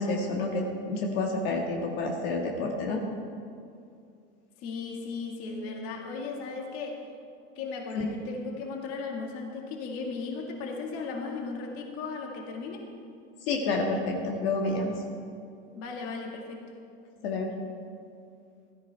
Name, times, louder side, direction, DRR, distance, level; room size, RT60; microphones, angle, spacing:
voice 1, 0.0-3.0 8.0-8.1 13.5-14.9 17.2-17.5, left 3 dB, 70° left, 0 dB, 1.7 m, -29 dB
voice 2, 4.6-7.0 7.6-12.9 15.8-16.7, left 4 dB, 50° left, 1 dB, 1.9 m, -36 dB
15.0 x 13.5 x 3.4 m, 2.4 s
supercardioid pair, 145°, 31 cm